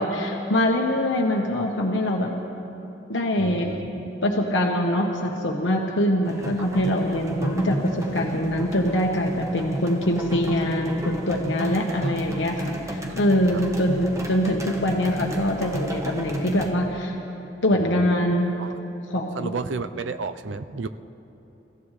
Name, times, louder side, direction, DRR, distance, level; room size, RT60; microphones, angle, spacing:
voice 1, 0.0-2.3 3.1-3.7 4.2-17.2 17.6-18.5 19.1-19.5, left 1 dB, 90° left, 0 dB, 1.2 m, -24 dB
voice 2, 3.4-4.1 6.6-6.7 12.0-12.1 13.1-13.2 13.5-13.6 17.8-18.0 18.6-18.7 19.3-20.9, right 4 dB, 90° right, 11 dB, 0.6 m, -32 dB
sound 1, 6.2-16.7, right 1 dB, 15° right, 1.2 m, -32 dB
29.0 x 15.0 x 3.3 m, 3.0 s
head